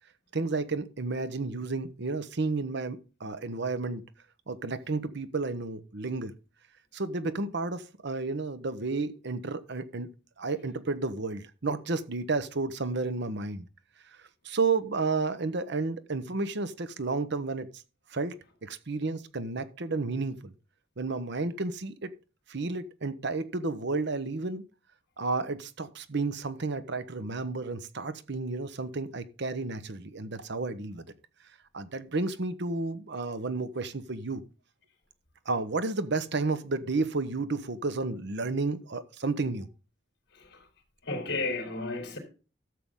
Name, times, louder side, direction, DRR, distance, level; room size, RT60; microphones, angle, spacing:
voice 1, 0.3-4.0 4.5-6.3 6.9-10.1 10.4-13.7 14.1-14.2 14.4-17.7 18.1-18.4 18.6-20.5 21.0-22.1 22.5-24.6 25.2-31.1 31.7-34.4 35.5-39.7, right 3 dB, 60° right, 0.9 m, -31 dB
voice 2, 41.0-42.2, left 3 dB, 60° left, 3.6 m, -33 dB
13.0 x 7.7 x 3.7 m
head